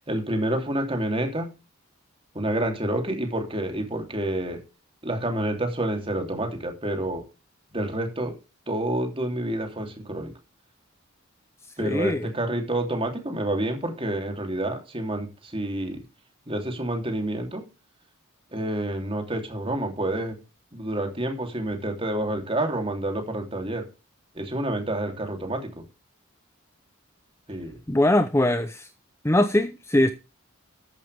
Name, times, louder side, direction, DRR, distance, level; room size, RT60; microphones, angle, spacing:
voice 1, 0.1-1.5 2.3-4.6 5.0-7.3 7.7-8.3 8.7-10.3 11.8-16.0 16.5-17.7 18.5-20.4 20.7-23.9 24.3-25.8 27.5-27.8, right 1 dB, 25° right, 3.2 m, -28 dB
voice 2, 11.8-12.2 27.9-28.9 29.2-30.1, left 1 dB, 10° left, 0.7 m, -21 dB
14.0 x 11.0 x 3.5 m
head